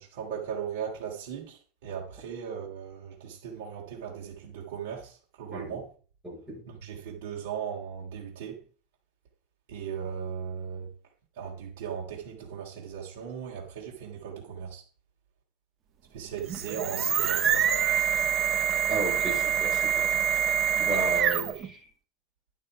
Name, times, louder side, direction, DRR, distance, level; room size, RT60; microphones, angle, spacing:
voice 1, 0.0-5.9 6.7-8.6 9.7-10.9 11.3-14.8 16.1-17.8, right 7 dB, 70° right, 3.1 m, -38 dB
voice 2, 5.5-5.8 6.2-6.6 18.9-20.1 20.8-21.9, right 3 dB, 10° right, 5.8 m, -34 dB
sound 1, 16.4-21.7, right 8 dB, 25° right, 0.7 m, -26 dB
11.0 x 6.5 x 4.9 m
supercardioid pair, 175°, 0 cm